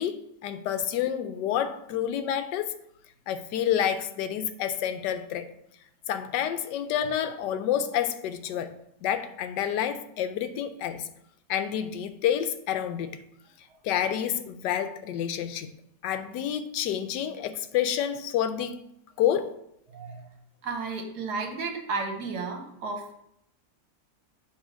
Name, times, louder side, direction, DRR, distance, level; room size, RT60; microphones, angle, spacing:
voice 1, 0.0-2.7 3.3-5.5 6.1-8.8 9.0-11.1 11.5-13.2 13.8-15.7 16.0-18.8 19.2-19.5, left 9 dB, 80° left, 9 dB, 1.2 m, -29 dB
voice 2, 19.9-20.2 20.6-23.2, right 4 dB, 70° right, 3 dB, 1.6 m, -33 dB
8.0 x 3.2 x 5.0 m, 0.76 s
omnidirectional pair, 1.9 m